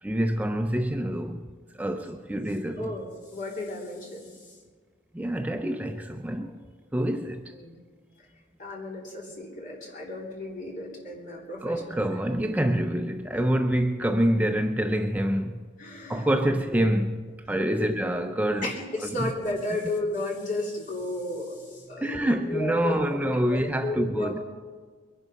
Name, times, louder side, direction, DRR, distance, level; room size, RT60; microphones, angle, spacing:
voice 1, 0.0-2.9 5.1-6.6 6.9-7.5 11.6-15.7 16.1-18.7 19.0-19.3 22.0-24.4, right 1 dB, 10° right, 0.5 m, -26 dB
voice 2, 2.8-4.6 7.5-7.8 8.6-12.0 15.8-16.3 16.7-16.8 17.5-17.9 18.6-24.4, left 2 dB, 45° left, 3.3 m, -34 dB
22.0 x 11.0 x 5.4 m
head